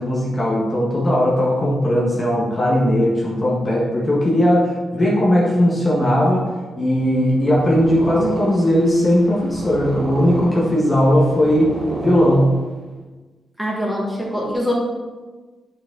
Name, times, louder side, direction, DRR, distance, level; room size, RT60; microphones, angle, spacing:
voice 1, 0.0-6.5 6.8-11.7 12.0-12.5, equal, 25° left, -5 dB, 1.6 m, -18 dB
Purr, 7.3-13.0, right 2 dB, 45° right, 1.5 m, -31 dB
voice 2, 13.6-14.7, equal, ahead, -4 dB, 2.1 m, -23 dB
8.1 x 5.9 x 4.0 m, 1.3 s
cardioid pair, 110°, 0 cm